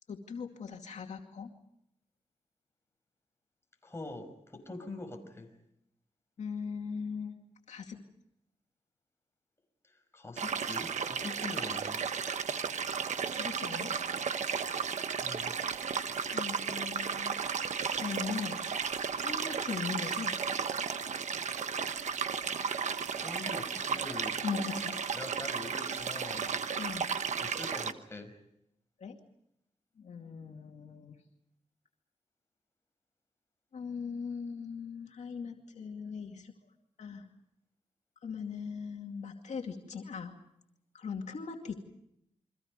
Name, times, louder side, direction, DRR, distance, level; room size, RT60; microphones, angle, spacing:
voice 1, 0.1-1.5 6.4-7.4 7.7-8.0 13.3-13.9 16.3-17.4 17.9-18.6 19.2-20.4 24.4-25.0 26.8-27.2 29.0-29.2 30.0-31.2 33.7-36.5 37.0-37.3 38.2-40.3 40.9-41.8, left 5 dB, 80° left, 2 dB, 2.4 m, -39 dB
voice 2, 3.8-5.5 9.9-12.0 15.2-15.5 23.1-24.4 25.1-26.6 27.4-28.3, left 2 dB, 20° left, 4 dB, 5.5 m, -44 dB
sound 1, 10.4-27.9, right 6 dB, 80° right, 1.2 m, -34 dB
29.5 x 24.5 x 5.2 m, 0.77 s
wide cardioid pair, 105°, 12 cm